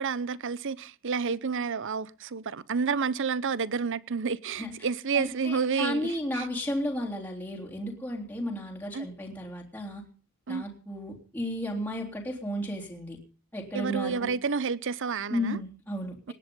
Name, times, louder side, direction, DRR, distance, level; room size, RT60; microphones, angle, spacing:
voice 1, 0.0-6.5 8.9-9.1 10.5-10.6 13.7-15.6, right 5 dB, 60° right, 0.8 m, -30 dB
voice 2, 5.1-10.0 10.5-13.2 13.5-14.3 15.3-16.3, left 1 dB, 10° left, 3.4 m, -33 dB
19.0 x 11.5 x 5.5 m
head